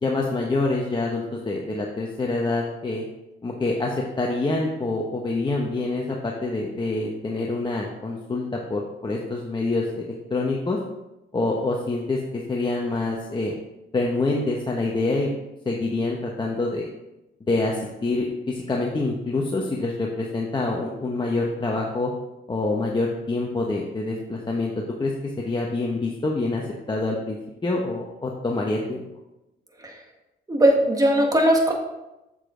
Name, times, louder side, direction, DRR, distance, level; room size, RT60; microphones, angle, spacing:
voice 1, 0.0-3.0 3.4-10.8 11.3-13.5 13.9-15.3 15.6-16.9 17.5-22.1 22.5-24.7 25.0-25.1 25.4-26.6 26.9-29.0, left 2 dB, 25° left, -1 dB, 1.0 m, -26 dB
voice 2, 30.5-31.7, right 1 dB, 20° right, 1 dB, 1.7 m, -18 dB
7.5 x 6.8 x 3.8 m, 0.95 s
cardioid pair, 90°, 20 cm